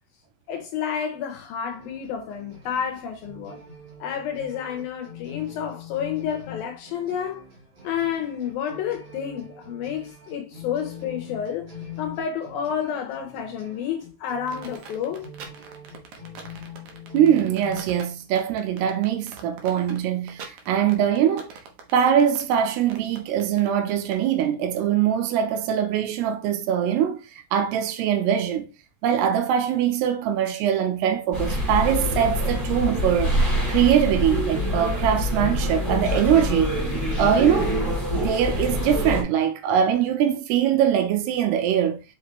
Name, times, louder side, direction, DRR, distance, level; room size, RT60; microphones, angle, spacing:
voice 1, 0.5-3.6 4.0-7.4 7.8-15.3, left 8 dB, 75° left, 2.3 m, -30 dB
sound 1, 1.7-17.8, left 5 dB, 40° right, 1.5 m, -43 dB
sound 2, 14.5-24.5, right 6 dB, 65° right, 2.1 m, -43 dB
voice 2, 17.1-21.5 21.9-28.7 29.0-33.4 33.7-36.8 37.2-37.8 38.2-42.0, right 9 dB, 85° right, 2.9 m, -22 dB
sound 3, 31.3-39.2, equal, 5° left, 3.7 m, -25 dB
6.0 x 5.5 x 3.2 m
omnidirectional pair, 4.8 m